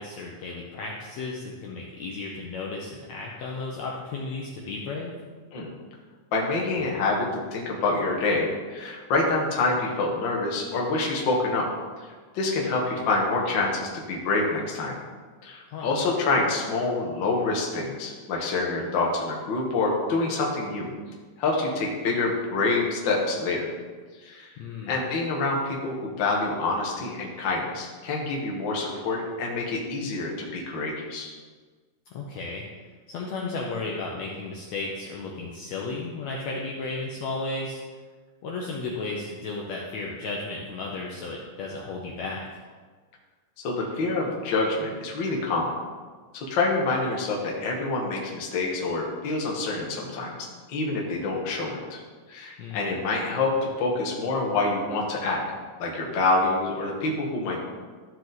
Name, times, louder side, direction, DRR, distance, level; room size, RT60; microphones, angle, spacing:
voice 1, 0.0-5.1 15.7-15.9 24.6-25.0 32.1-32.6 33.1-37.8 38.4-42.4 52.6-53.0, left 3 dB, 70° left, -2 dB, 1.8 m, -34 dB
voice 2, 6.3-11.7 12.3-15.0 15.4-20.9 21.4-23.7 24.2-24.5 24.9-31.3 43.6-45.8 46.3-50.3 50.7-52.0 52.3-55.4 55.8-57.6, left 3 dB, 50° left, -1 dB, 1.5 m, -26 dB
13.5 x 4.9 x 4.0 m, 1.5 s
omnidirectional pair, 3.9 m